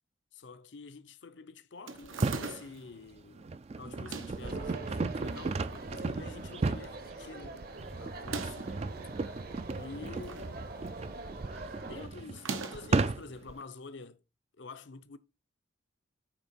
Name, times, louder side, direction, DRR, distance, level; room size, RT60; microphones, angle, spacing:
voice 1, 0.3-7.7 8.0-8.8 9.7-10.5 11.9-14.2 14.6-15.2, left 4 dB, 65° left, 0.7 m, -48 dB
sound 1, 1.9-2.9 3.9-4.5 5.3-5.9 6.3-6.4 6.6-6.7 8.1-8.8 9.8-10.6 10.9-11.2 12.3-13.0, right 4 dB, 85° right, 1.0 m, -41 dB
sound 2, 2.0-2.5 3.2-13.5, right 3 dB, 30° right, 0.3 m, -35 dB
sound 3, 4.4-12.1, right 3 dB, 50° right, 0.9 m, -44 dB
8.9 x 3.8 x 4.2 m
head